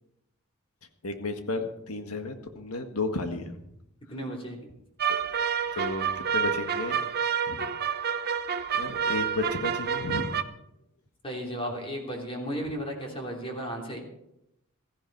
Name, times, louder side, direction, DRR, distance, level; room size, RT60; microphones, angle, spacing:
voice 1, 1.0-3.6 5.1-7.0 7.5-7.6 8.8-10.3, left 3 dB, 80° left, 6 dB, 1.7 m, -33 dB
voice 2, 4.1-4.6 11.2-14.0, equal, 25° left, 0 dB, 3.1 m, -34 dB
sound 1, 5.0-10.4, right 7 dB, 45° right, 0.7 m, -29 dB
16.0 x 14.5 x 4.6 m, 0.83 s
head